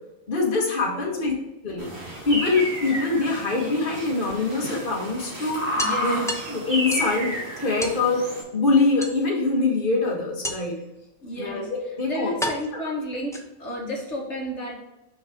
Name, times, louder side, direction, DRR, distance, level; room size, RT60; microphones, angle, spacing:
voice 1, 0.3-1.3 1.6-1.9 2.3-5.6 6.0-6.2 6.5-8.3 8.5-10.8 11.4-12.3 12.7-12.8, left 3 dB, 40° left, -2 dB, 1.7 m, -24 dB
sound 1, 1.8-2.8 4.3-4.4 4.8-4.9 5.2-5.3 5.8-7.2 7.8-8.0 9.0-9.6 10.4-10.9 11.7-11.8 12.4-13.8, equal, 5° left, 0.4 m, -33 dB
sound 2, 1.8-8.4, equal, 85° right, 2.7 m, -31 dB
voice 2, 5.7-6.3 11.2-11.7 12.1-14.8, equal, 60° left, -2 dB, 1.9 m, -32 dB
6.5 x 5.6 x 3.6 m, 0.93 s
omnidirectional pair, 1.3 m